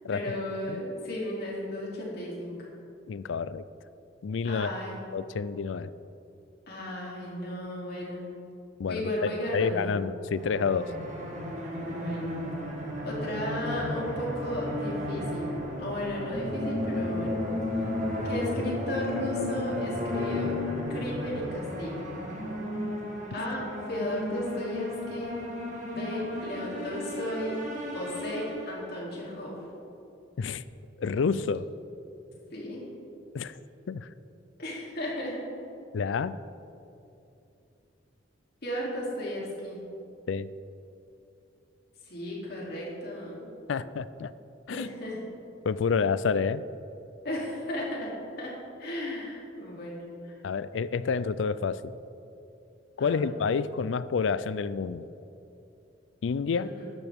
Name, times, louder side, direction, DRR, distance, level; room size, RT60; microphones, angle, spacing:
voice 1, 0.1-2.7 4.4-4.9 6.7-8.2 8.9-9.9 11.8-12.4 13.0-15.5 15.8-17.4 18.2-20.5 20.9-22.2 23.3-25.3 25.9-27.6 27.9-29.6 32.5-32.8 34.6-35.4 38.6-39.8 42.0-43.5 44.7-45.2 47.2-50.4 53.0-53.3 56.6-56.9, left 1 dB, 60° left, -4 dB, 2.9 m, -35 dB
voice 2, 3.1-3.7 4.2-4.7 5.1-5.9 8.8-10.9 30.4-30.6 31.0-31.7 33.3-33.5 33.9-34.1 35.9-36.4 40.3-40.5 43.7-44.3 44.7-44.9 45.6-46.6 50.4-51.9 53.0-55.1 56.2-56.7, left 5 dB, 85° left, 16 dB, 0.4 m, -29 dB
sound 1, 10.3-29.1, left 1 dB, 40° right, 2.1 m, -34 dB
13.5 x 10.5 x 3.6 m, 2.8 s
head